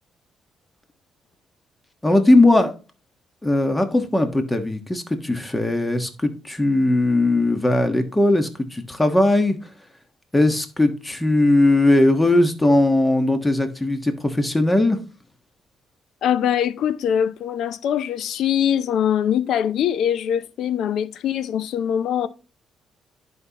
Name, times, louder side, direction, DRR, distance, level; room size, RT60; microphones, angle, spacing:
voice 1, 2.0-2.7 3.4-9.6 10.3-15.0, left 2 dB, 15° left, 1.3 m, -19 dB
voice 2, 16.2-22.3, left 9 dB, 75° left, 0.5 m, -22 dB
10.5 x 5.5 x 2.9 m
cardioid pair, 90°, 0 cm